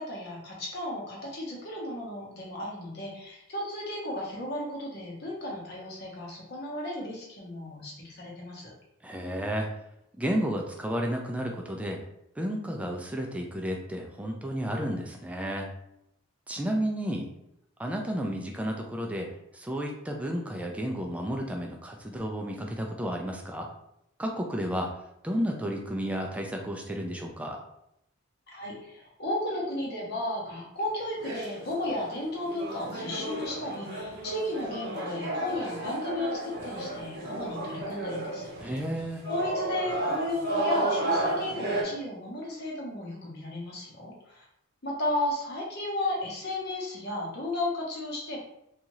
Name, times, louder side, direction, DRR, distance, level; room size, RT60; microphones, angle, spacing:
voice 1, 0.0-8.7 28.5-38.8 39.3-44.4 44.8-48.4, left 1 dB, 50° left, -3 dB, 0.8 m, -34 dB
voice 2, 9.0-9.7 10.1-12.0 12.4-15.7 16.5-17.3 17.8-19.3 19.5-23.7 24.2-24.9 25.2-27.6 38.6-39.2, equal, 5° right, 1 dB, 0.3 m, -32 dB
sound 1, 30.9-41.8, right 2 dB, 55° right, 0.8 m, -33 dB
2.7 x 2.4 x 3.0 m, 0.79 s
head